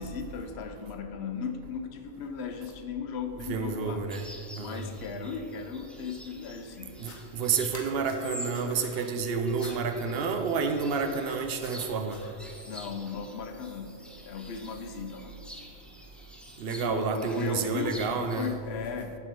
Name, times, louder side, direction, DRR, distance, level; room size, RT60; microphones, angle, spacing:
voice 1, 0.0-4.1 4.6-7.0 12.6-14.0 14.3-15.3 16.7-19.2, left 5 dB, 75° left, 7 dB, 0.9 m, -37 dB
voice 2, 3.5-4.2 4.6-4.8 7.0-12.2 16.6-18.5, right 5 dB, 70° right, 7 dB, 0.8 m, -29 dB
sound 1, 4.1-18.5, equal, ahead, 0.4 m, -48 dB
sound 2, 6.9-7.2 7.6-9.0 9.6-9.7 11.2-12.3, left 3 dB, 45° left, 1.1 m, -47 dB
7.5 x 3.6 x 6.5 m, 2.5 s
omnidirectional pair, 1.1 m